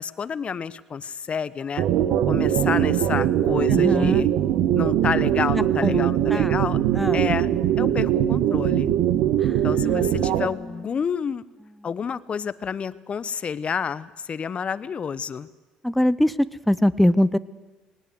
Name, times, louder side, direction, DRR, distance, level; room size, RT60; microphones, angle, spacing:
voice 1, 0.0-1.9 2.3-4.3 4.7-6.8 7.1-8.9 9.6-11.4 11.8-15.5, left 6 dB, 40° left, 17 dB, 1.0 m, -29 dB
sound 1, 1.8-10.5, right 11 dB, 70° right, 1.2 m, -21 dB
voice 2, 3.7-4.3 5.5-6.6 6.9-7.2 9.4-10.9 15.8-17.4, left 1 dB, 5° left, 15 dB, 0.8 m, -24 dB
19.5 x 19.0 x 8.0 m, 1.3 s
supercardioid pair, 75°, 3 cm